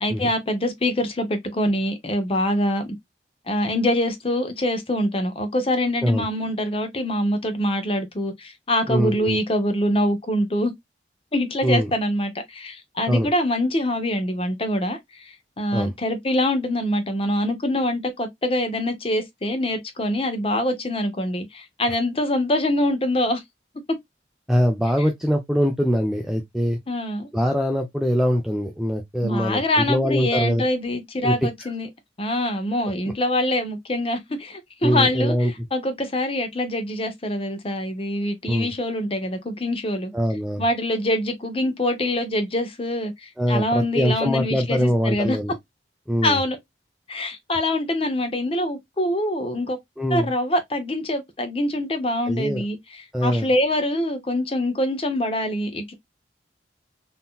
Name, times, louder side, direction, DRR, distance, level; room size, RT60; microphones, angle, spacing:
voice 1, 0.0-3.0 3.5-10.7 11.3-23.4 26.9-27.3 29.2-31.9 32.2-40.1 40.6-45.4 46.2-46.6 47.1-49.8 50.1-52.8 53.2-55.9, left 1 dB, 30° left, 0.7 m, -24 dB
voice 2, 8.9-9.4 11.6-11.9 13.1-13.3 15.7-15.9 24.5-26.8 27.3-30.6 31.2-31.7 34.8-35.7 38.5-38.7 40.1-40.6 43.4-45.5 46.1-46.4 50.0-50.3 52.3-52.6 53.1-53.5, equal, ahead, 0.4 m, -23 dB
3.7 x 2.7 x 2.3 m
head